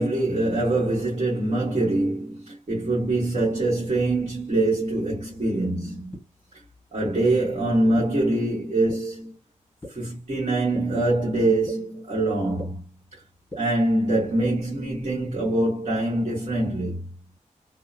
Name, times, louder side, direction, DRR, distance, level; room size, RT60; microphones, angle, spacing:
voice 1, 0.0-6.2 6.9-9.4 9.9-12.8 13.1-13.2 13.6-17.1, right 2 dB, 50° right, 1.3 m, -24 dB
sound 1, 6.1-6.2 7.0-7.1 8.0-8.1 8.9-9.0 9.8-9.9 10.7-10.8 11.7-11.8 12.6-12.7 13.5-13.6 14.4-14.5, left 1 dB, 15° left, 0.9 m, -35 dB
2.7 x 2.1 x 2.4 m
wide cardioid pair, 120°, 13 cm